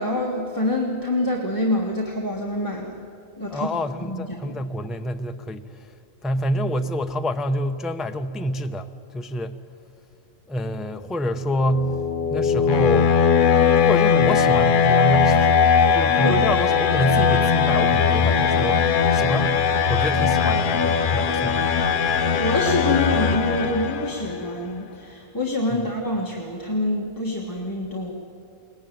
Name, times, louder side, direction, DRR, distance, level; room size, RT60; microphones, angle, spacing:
voice 1, 0.0-3.0 3.4-3.7 4.0-4.6 16.2-16.4 22.3-28.1, left 1 dB, 15° left, -2 dB, 1.6 m, -26 dB
voice 2, 3.5-5.9 6.2-9.6 10.5-12.0 12.3-13.2 13.8-21.7 25.7-25.9, equal, ahead, 7 dB, 0.5 m, -27 dB
sound 1, 11.4-24.3, left 6 dB, 50° left, 0.8 m, -19 dB
22.0 x 18.5 x 9.2 m, 2.7 s
omnidirectional pair, 1.3 m